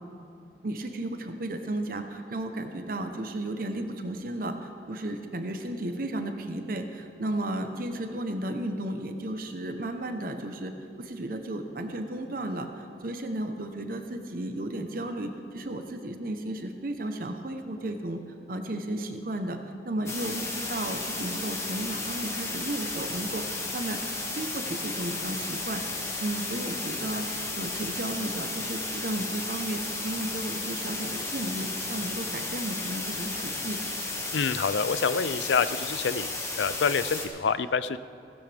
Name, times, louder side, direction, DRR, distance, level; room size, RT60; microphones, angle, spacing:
voice 1, 0.6-18.2 18.5-19.6 19.8-24.0 24.3-27.2 27.6-33.8, right 1 dB, 50° right, 6 dB, 0.9 m, -34 dB
sound 1, 20.1-37.3, left 2 dB, 15° left, 1.3 m, -33 dB
voice 2, 34.3-36.3 36.6-38.0, left 5 dB, 80° left, 15 dB, 0.5 m, -27 dB
16.0 x 16.0 x 3.5 m, 2.8 s
head